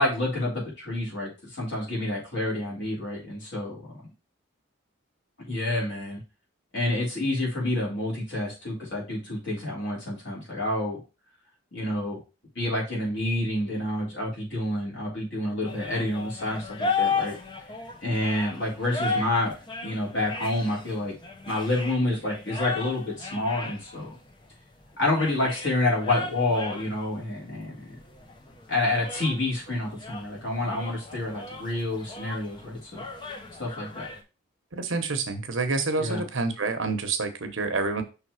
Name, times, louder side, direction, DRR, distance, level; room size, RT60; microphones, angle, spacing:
voice 1, 0.0-4.0 5.5-6.2 6.7-11.0 11.7-12.2 12.6-17.4 18.0-19.5 19.8-21.1 21.5-24.2 25.0-28.0 28.7-33.1 33.6-34.1 36.0-36.2, left 1 dB, 55° left, -4 dB, 3.5 m, -28 dB
sound 1, 15.6-34.2, left 4 dB, 25° left, 0.8 m, -35 dB
voice 2, 34.7-38.0, right 3 dB, 75° right, 7 dB, 1.0 m, -28 dB
5.8 x 3.5 x 4.8 m, 0.30 s
head